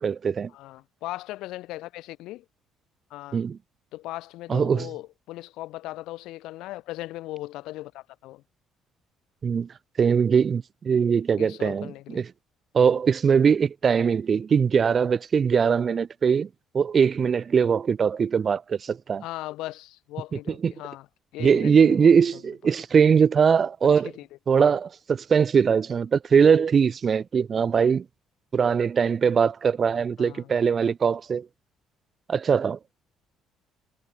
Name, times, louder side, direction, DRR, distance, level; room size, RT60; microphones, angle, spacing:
voice 1, 0.0-0.5 3.3-3.6 4.5-4.9 9.4-9.7 10.0-12.3 12.7-16.5 16.7-19.2 20.3-20.7 21.4-24.1 24.5-28.0 28.5-31.5 32.3-32.8, right 6 dB, 35° right, 1.7 m, -21 dB
voice 2, 0.5-2.5 3.1-3.4 3.9-8.4 11.4-12.2 19.2-21.1 21.3-22.1 23.8-24.3 30.2-30.5, left 17 dB, 85° left, 1.9 m, -38 dB
cardioid pair, 125°, 0 cm